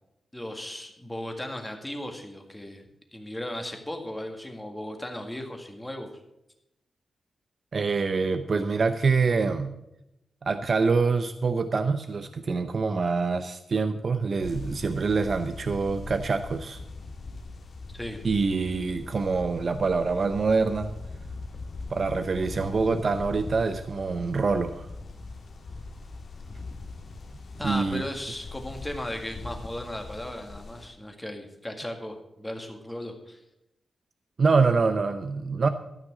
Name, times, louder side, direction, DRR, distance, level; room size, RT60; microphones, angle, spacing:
voice 1, 0.3-2.9 3.1-6.1 17.9-18.3 27.6-33.4, left 1 dB, 10° left, 4 dB, 1.8 m, -36 dB
voice 2, 7.7-9.8 10.4-16.8 18.2-20.9 21.9-24.9 27.6-28.0 34.4-35.7, right 4 dB, 50° right, 9 dB, 0.6 m, -25 dB
sound 1, 14.4-30.9, left 3 dB, 55° left, 1.9 m, -41 dB
13.5 x 6.0 x 7.5 m, 0.87 s
wide cardioid pair, 110°, 0 cm